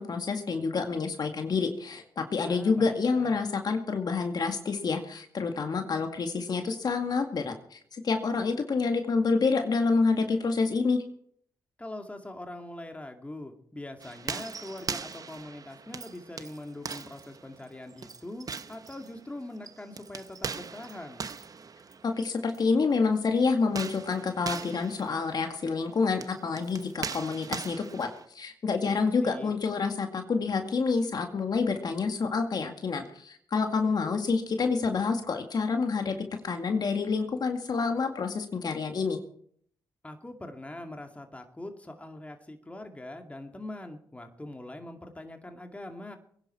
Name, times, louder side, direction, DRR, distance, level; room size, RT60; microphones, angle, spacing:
voice 1, 0.0-11.0 22.0-28.1 28.3-36.1 36.4-39.2, left 4 dB, 55° left, 5 dB, 2.2 m, -28 dB
voice 2, 2.5-3.5 11.8-21.3 28.8-29.6 40.0-46.2, left 1 dB, 15° left, 5 dB, 2.3 m, -42 dB
sound 1, 14.0-22.6 23.6-28.2, right 5 dB, 45° right, 1.0 m, -40 dB
22.5 x 10.5 x 4.5 m, 0.63 s
supercardioid pair, 55°, 8 cm